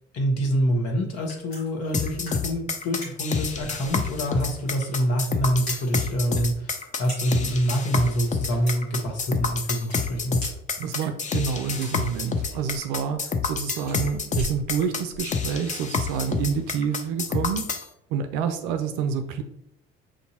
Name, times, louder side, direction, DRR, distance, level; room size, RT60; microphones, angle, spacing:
voice 1, 0.1-10.4, equal, 55° left, 1 dB, 1.2 m, -26 dB
sound 1, 1.0-15.3, equal, 85° left, 1.5 m, -42 dB
sound 2, 1.9-17.9, left 5 dB, 25° left, 0.6 m, -28 dB
voice 2, 10.8-17.7 18.1-19.4, right 7 dB, 65° right, 7 dB, 0.5 m, -28 dB
6.3 x 2.7 x 2.8 m, 0.79 s
hypercardioid pair, 55°, 30 cm